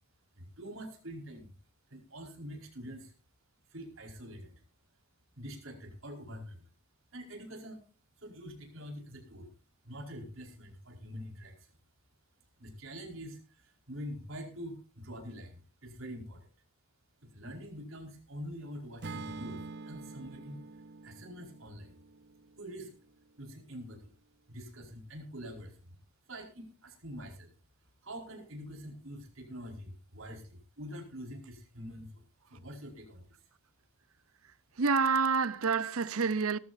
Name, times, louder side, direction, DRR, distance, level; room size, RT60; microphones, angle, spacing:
voice 1, 0.4-1.5 1.9-3.1 3.7-4.6 5.4-6.6 7.1-7.8 8.2-9.5 9.8-11.7 12.6-16.5 17.2-20.6 21.0-22.0 22.6-22.9 23.4-24.1 24.5-25.9 26.3-27.5 28.0-32.2 32.5-33.3, equal, 70° right, 4.9 m, -45 dB
Acoustic guitar / Strum, 19.0-23.2, right 3 dB, 50° right, 0.8 m, -46 dB
voice 2, 34.8-36.6, right 5 dB, 90° right, 0.7 m, -28 dB
19.0 x 14.5 x 2.6 m
head